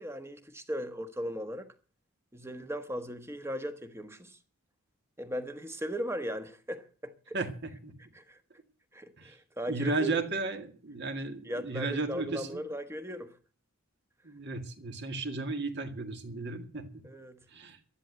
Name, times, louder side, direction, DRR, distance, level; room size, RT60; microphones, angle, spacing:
voice 1, 0.0-1.7 2.3-4.4 5.2-7.4 8.1-8.4 8.9-10.2 11.4-13.4 17.0-17.4, equal, 10° right, 1.2 m, -38 dB
voice 2, 7.3-7.9 9.2-9.3 9.7-12.6 14.2-17.0 17.5-17.8, right 3 dB, 50° right, 2.0 m, -34 dB
12.0 x 11.0 x 8.0 m
head